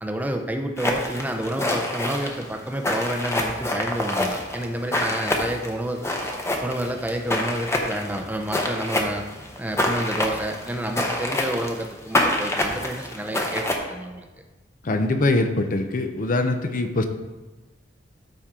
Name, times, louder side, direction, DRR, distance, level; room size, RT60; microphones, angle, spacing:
voice 1, 0.0-6.1 6.6-9.2 9.6-14.3, right 1 dB, 10° right, 4 dB, 0.5 m, -29 dB
sound 1, 0.8-13.8, left 1 dB, 15° left, 0.8 m, -27 dB
voice 2, 14.8-17.1, left 2 dB, 50° left, 7 dB, 0.6 m, -23 dB
13.0 x 4.3 x 3.7 m, 1.2 s
head